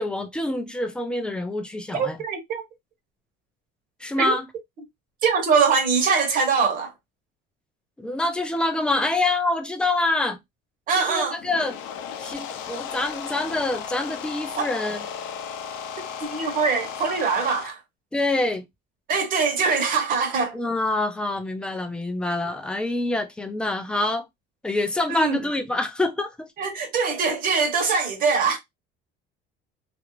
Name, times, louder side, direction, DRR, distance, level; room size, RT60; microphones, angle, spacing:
voice 1, 0.0-2.2 4.0-4.5 8.0-10.4 11.0-11.8 12.2-15.0 18.1-18.6 20.5-24.3 24.6-26.5, left 2 dB, 5° left, 0.3 m, -26 dB
voice 2, 1.9-2.6 4.2-4.3 5.2-6.9 10.9-11.4 14.6-14.7 16.2-17.8 19.1-20.6 25.1-25.4 26.6-28.6, right 5 dB, 40° right, 0.9 m, -23 dB
sound 1, 11.3-17.7, left 8 dB, 70° left, 0.5 m, -35 dB
2.5 x 2.0 x 2.9 m
cardioid pair, 150°, 21 cm